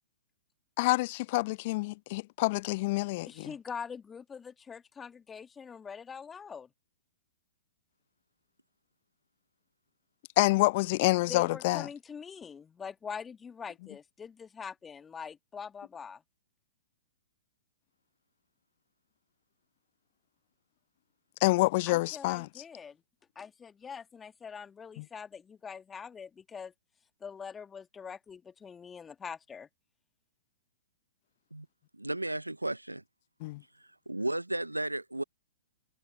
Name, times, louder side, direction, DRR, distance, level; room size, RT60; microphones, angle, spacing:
voice 1, 0.8-3.5 10.4-11.9 21.4-22.5 25.0-25.1 33.4-33.6, left 21 dB, 45° left, 0.7 m, -27 dB
voice 2, 3.3-6.7 11.3-16.2 21.9-23.0 23.3-26.7 27.2-29.7, left 6 dB, 15° left, 1.7 m, -44 dB
voice 3, 31.9-33.0 34.1-35.2, right 1 dB, 90° right, 0.5 m, -33 dB
figure-of-eight pair, 110°, 0 cm